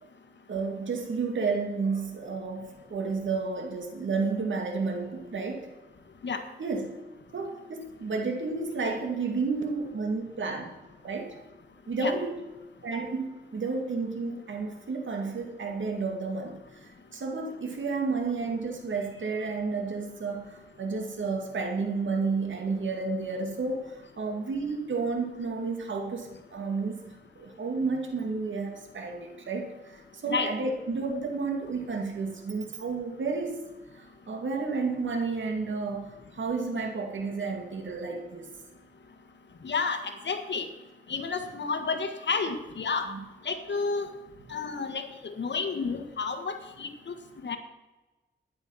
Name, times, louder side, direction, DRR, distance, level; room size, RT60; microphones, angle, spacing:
voice 1, 0.5-5.7 6.6-7.0 7.3-10.8 11.0-11.4 11.9-12.4 12.8-33.6 33.9-38.5 43.1-43.2, right 4 dB, 75° right, 3 dB, 2.2 m, -31 dB
voice 2, 39.6-40.7 41.1-43.1 43.4-44.1 44.5-47.1 47.4-47.6, left 4 dB, 65° left, 7 dB, 1.6 m, -31 dB
12.5 x 9.9 x 5.7 m, 1.1 s
cardioid pair, 80°, 20 cm